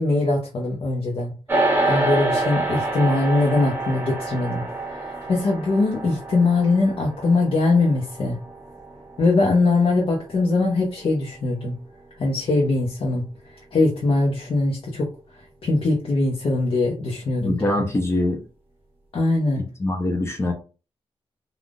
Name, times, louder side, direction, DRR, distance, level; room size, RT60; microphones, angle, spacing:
voice 1, 0.0-1.3 1.9-8.4 9.2-11.7 12.2-13.3 13.7-15.1 15.6-17.8 19.1-19.7, left 3 dB, 60° left, -2 dB, 0.8 m, -21 dB
sound 1, 1.5-11.0, right 2 dB, 20° right, 1.2 m, -27 dB
voice 2, 17.4-18.4 19.8-20.5, left 1 dB, 25° left, 3 dB, 0.6 m, -23 dB
3.5 x 2.4 x 2.4 m, 0.34 s
cardioid pair, 90°, 11 cm